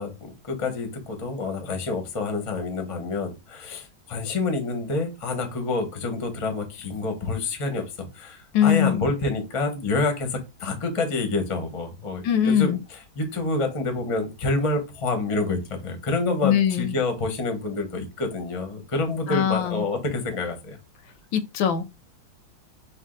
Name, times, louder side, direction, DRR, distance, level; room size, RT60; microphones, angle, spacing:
voice 1, 0.0-12.8 13.2-20.8, left 3 dB, 35° left, 0.5 m, -28 dB
voice 2, 8.5-9.1 12.2-12.8 16.4-17.0 19.3-19.9 21.3-21.8, left 9 dB, 75° left, 1.3 m, -21 dB
5.2 x 2.3 x 3.8 m
omnidirectional pair, 2.2 m